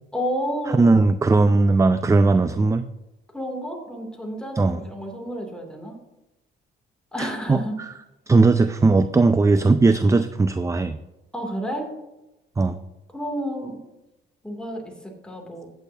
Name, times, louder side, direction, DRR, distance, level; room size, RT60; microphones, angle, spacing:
voice 1, 0.1-0.9 3.3-6.0 7.1-7.7 11.3-11.9 13.1-13.8 14.4-15.7, equal, 5° left, 1 dB, 2.7 m, -30 dB
voice 2, 0.7-2.9 4.6-4.8 7.2-7.6 8.3-11.0 12.6-12.8, right 3 dB, 15° right, 12 dB, 0.4 m, -18 dB
14.5 x 8.7 x 2.8 m, 0.98 s
cardioid pair, 90°, 20 cm